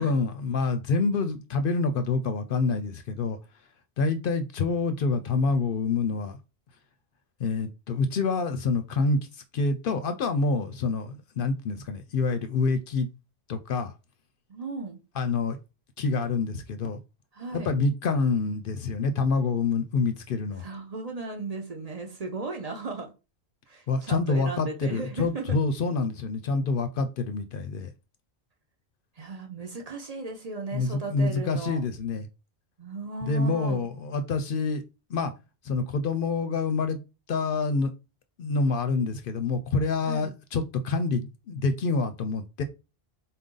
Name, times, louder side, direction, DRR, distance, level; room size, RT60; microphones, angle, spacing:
voice 1, 0.0-3.4 4.0-6.4 7.4-13.1 13.5-13.9 15.2-15.6 16.0-17.0 17.5-20.7 23.9-27.9 30.7-32.3 33.2-34.8 35.1-35.3 35.6-37.0 37.3-37.9 38.4-42.6, left 4 dB, 65° left, 0.7 m, -27 dB
voice 2, 14.5-15.0 17.3-17.7 20.6-23.1 23.7-25.6 29.2-31.8 32.8-33.8 40.0-40.3, right 3 dB, 40° right, 0.8 m, -36 dB
4.1 x 2.6 x 3.7 m
omnidirectional pair, 1.1 m